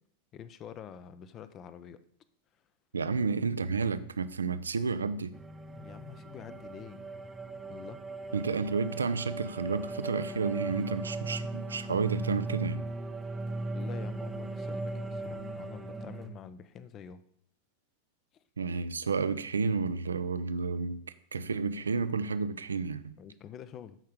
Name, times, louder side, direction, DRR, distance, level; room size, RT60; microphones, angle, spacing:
voice 1, 0.3-2.0 3.1-3.3 5.7-7.0 7.7-8.0 13.7-17.2 18.3-18.4 23.2-24.0, left 8 dB, 30° left, 0.7 m, -47 dB
voice 2, 2.9-5.3 8.3-12.8 18.6-21.0 21.3-23.1, right 4 dB, 75° right, 0.6 m, -31 dB
sound 1, 5.3-16.3, right 2 dB, 10° right, 1.0 m, -38 dB
14.0 x 5.7 x 5.0 m
figure-of-eight pair, 90°, 0 cm